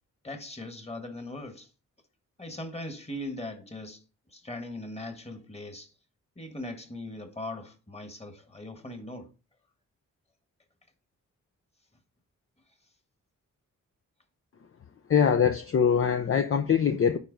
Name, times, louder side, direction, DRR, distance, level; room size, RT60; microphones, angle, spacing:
voice 1, 0.2-1.7 2.4-4.0 4.3-5.9 6.4-9.3, left 1 dB, 20° left, 1.5 m, -39 dB
voice 2, 15.1-17.2, left 7 dB, 45° left, 0.6 m, -23 dB
9.7 x 4.5 x 4.0 m
cardioid pair, 90°, 32 cm